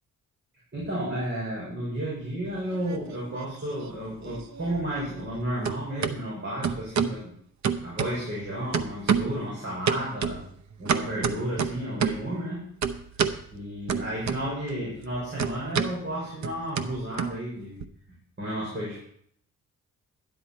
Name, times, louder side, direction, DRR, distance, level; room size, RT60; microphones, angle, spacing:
voice 1, 0.7-7.3 7.8-10.4 10.8-12.6 13.5-17.8 18.4-19.0, right 1 dB, 35° right, -6 dB, 5.6 m, -32 dB
sound 1, 2.5-3.5 3.8-5.4 5.6-6.2 6.6-7.2 7.6-8.4 8.7-9.4 9.9-12.3 12.8-13.4 13.9-14.7 15.0-17.8, right 6 dB, 55° right, 0.8 m, -29 dB
12.5 x 10.0 x 4.4 m, 0.66 s
cardioid pair, 115°, 33 cm